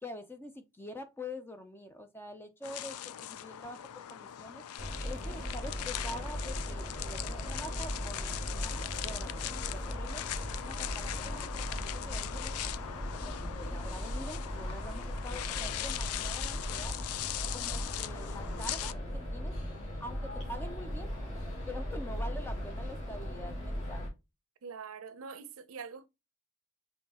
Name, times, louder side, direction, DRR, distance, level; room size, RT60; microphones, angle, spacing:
voice 1, 0.0-4.6 5.0-10.3 10.6-17.0 17.5-19.5 20.0-21.1 21.7-24.1, left 1 dB, 10° left, 0.5 m, -46 dB
sound 1, 2.6-18.9, left 12 dB, 75° left, 0.4 m, -40 dB
sound 2, 4.8-24.1, equal, 30° left, 2.6 m, -38 dB
voice 2, 15.5-16.2 24.6-26.1, right 5 dB, 70° right, 0.6 m, -46 dB
5.6 x 3.1 x 2.8 m
head